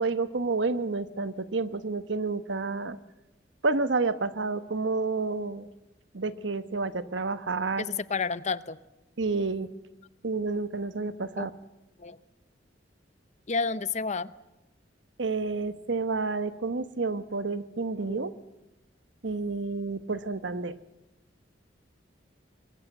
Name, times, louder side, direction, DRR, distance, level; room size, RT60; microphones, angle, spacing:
voice 1, 0.0-3.0 3.6-5.7 6.1-7.8 9.2-9.7 10.2-11.5 15.2-18.3 19.2-20.7, right 3 dB, 85° right, 13 dB, 1.1 m, -29 dB
voice 2, 7.8-8.8 11.4-11.5 12.0-12.2 13.5-14.3 18.1-18.3, left 4 dB, 40° left, 16 dB, 0.8 m, -31 dB
24.5 x 21.5 x 7.9 m, 0.94 s
head